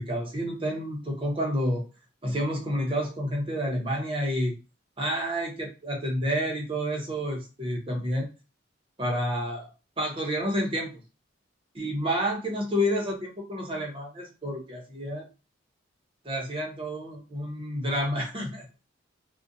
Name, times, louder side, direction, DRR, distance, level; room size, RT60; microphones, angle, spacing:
voice 1, 0.0-1.8 2.2-4.6 5.0-8.3 9.0-9.7 10.0-10.9 11.7-15.3 16.2-18.7, equal, 25° right, -1 dB, 0.7 m, -29 dB
2.4 x 2.1 x 2.6 m, 0.30 s
head